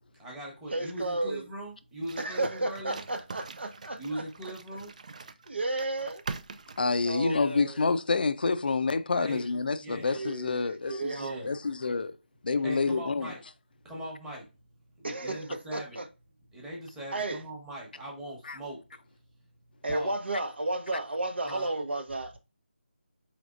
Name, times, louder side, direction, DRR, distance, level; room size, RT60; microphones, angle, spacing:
voice 1, 0.2-3.0 4.0-4.9 9.2-9.5 9.8-10.2 11.1-11.5 12.6-13.4 13.8-14.5 15.0-16.0 16.5-18.8 19.9-20.2 21.4-21.7, right 1 dB, 5° right, 1.0 m, -40 dB
voice 2, 0.7-1.5 2.2-4.5 5.5-6.2 7.0-7.9 10.0-11.6 15.0-16.1 17.1-17.4 19.8-22.4, right 2 dB, 70° right, 0.8 m, -33 dB
sound 1, 2.0-7.5, right 4 dB, 40° right, 0.3 m, -43 dB
voice 3, 6.8-11.1 11.4-12.1 12.4-13.3 18.5-18.6, left 4 dB, 55° left, 0.4 m, -28 dB
4.6 x 3.5 x 2.4 m
figure-of-eight pair, 160°, 6 cm